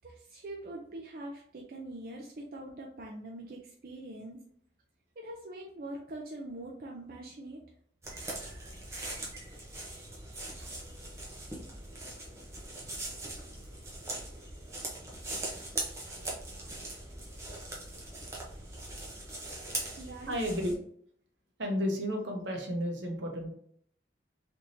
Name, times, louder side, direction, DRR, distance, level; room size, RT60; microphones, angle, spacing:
voice 1, 0.0-4.4 5.2-7.6 20.0-20.3, right 1 dB, 50° right, -1 dB, 0.5 m, -43 dB
sound 1, 8.0-20.7, right 2 dB, 15° right, 0.7 m, -41 dB
voice 2, 15.5-15.8 16.2-16.9 20.3-20.8 21.6-23.5, equal, 80° right, 1 dB, 0.9 m, -34 dB
3.5 x 3.0 x 2.6 m, 0.63 s
head